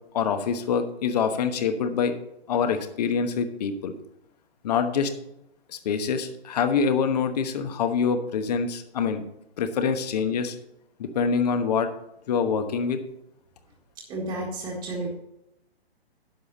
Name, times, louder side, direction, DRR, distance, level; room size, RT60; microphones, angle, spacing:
voice 1, 0.1-2.1 2.5-3.9 4.6-5.1 5.7-9.2 9.6-10.5 11.0-11.9 12.3-13.0, left 6 dB, 40° left, 8 dB, 1.2 m, -25 dB
voice 2, 14.1-15.1, right 2 dB, 15° right, -2 dB, 1.7 m, -31 dB
10.5 x 7.0 x 4.1 m, 0.81 s
figure-of-eight pair, 130°, 32 cm